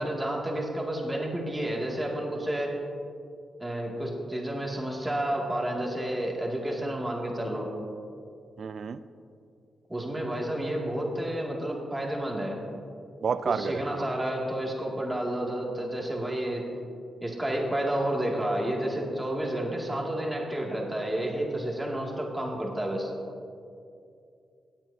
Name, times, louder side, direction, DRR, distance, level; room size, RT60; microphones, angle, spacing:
voice 1, 0.0-2.7 3.6-7.7 9.9-12.6 13.4-16.6 17.2-23.1, right 1 dB, 15° right, -2 dB, 2.4 m, -30 dB
voice 2, 8.6-9.0 13.2-14.1, right 6 dB, 60° right, 14 dB, 0.4 m, -30 dB
17.0 x 9.1 x 2.8 m, 2.5 s
cardioid pair, 65°, 0 cm